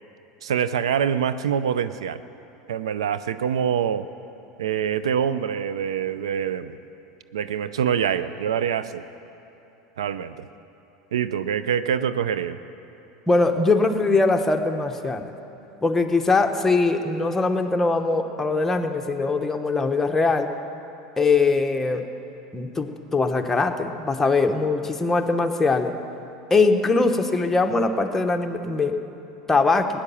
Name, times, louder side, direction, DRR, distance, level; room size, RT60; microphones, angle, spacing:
voice 1, 0.4-2.2 2.7-4.1 4.6-6.7 7.3-9.0 10.0-10.5 11.1-12.6, right 8 dB, 90° right, 13 dB, 0.5 m, -25 dB
voice 2, 13.3-15.3 15.8-20.5 21.2-22.1 22.5-25.9 26.5-29.0 29.5-29.9, left 3 dB, 15° left, 4 dB, 1.1 m, -21 dB
16.5 x 10.0 x 7.1 m, 3.0 s
hypercardioid pair, 100°, 3 cm